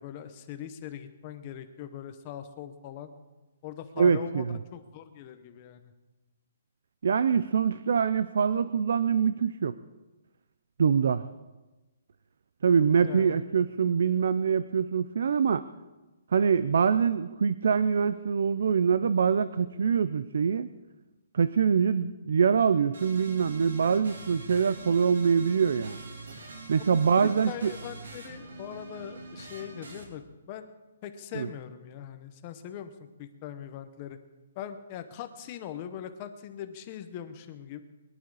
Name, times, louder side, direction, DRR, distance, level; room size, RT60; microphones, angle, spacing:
voice 1, 0.0-3.1 3.6-5.9 13.0-13.4 26.8-30.7 31.0-34.2 34.6-37.8, left 10 dB, 20° left, 9 dB, 0.8 m, -41 dB
voice 2, 4.0-4.6 7.0-9.8 10.8-11.3 12.6-15.6 16.3-20.7 21.3-26.0 26.7-27.7 31.3-31.5, right 6 dB, 55° right, 14 dB, 0.5 m, -24 dB
sound 1, 22.9-30.0, right 3 dB, 85° right, 3.6 m, -44 dB
22.0 x 11.0 x 4.8 m, 1.1 s
hypercardioid pair, 180°, 0 cm